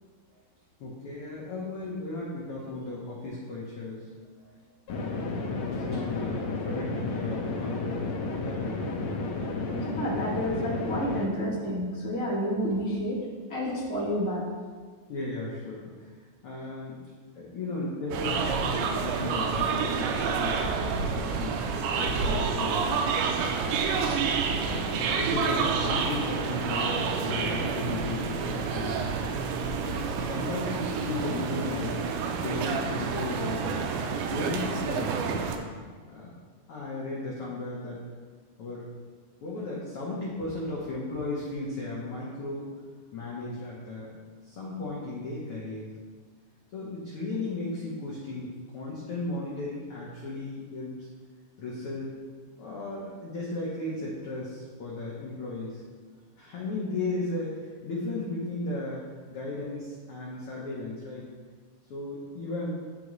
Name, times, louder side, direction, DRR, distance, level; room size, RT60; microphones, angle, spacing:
voice 1, 0.8-4.1 4.9-8.1 8.4-9.2 15.1-16.1 16.4-17.0 17.4-20.7 21.0-22.8 23.3-23.8 24.6-29.2 29.8-32.0 32.4-33.9 34.3-35.5 36.1-36.3 36.7-38.0 38.6-38.9 39.4-42.6 43.1-44.1 44.4-45.9 46.7-51.1 51.6-52.2 52.6-55.8 56.4-57.5 57.8-59.0 59.3-61.3 61.9-62.7, left 2 dB, 90° left, -5 dB, 1.2 m, -35 dB
sound 1, 4.9-11.2, left 3 dB, 70° left, 1.6 m, -32 dB
voice 2, 9.7-13.2 13.5-14.4, equal, 15° left, -8 dB, 0.3 m, -30 dB
sound 2, 18.1-35.6, right 5 dB, 80° right, 1.9 m, -29 dB
10.5 x 3.7 x 3.1 m, 1.5 s
omnidirectional pair, 3.9 m